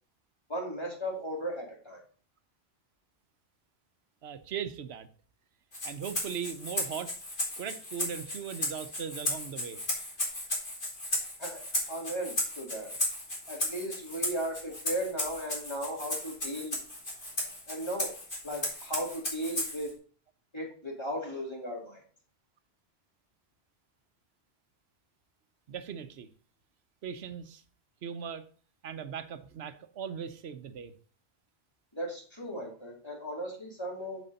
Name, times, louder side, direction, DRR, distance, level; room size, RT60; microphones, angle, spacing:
voice 1, 0.5-2.0 11.4-11.6 11.9-12.9 13.5-16.8 17.7-18.1 18.4-19.9 20.5-22.0 31.9-34.2, equal, 25° left, 2.7 m, -36 dB
voice 2, 4.2-5.1 5.8-7.1 7.6-9.8 25.7-26.3 27.0-27.6 28.0-28.5 28.8-30.9, right 7 dB, 90° right, 1.0 m, -39 dB
Rattle (instrument), 5.7-19.9, left 1 dB, 55° left, 2.8 m, -35 dB
7.6 x 7.2 x 4.0 m
omnidirectional pair, 1.0 m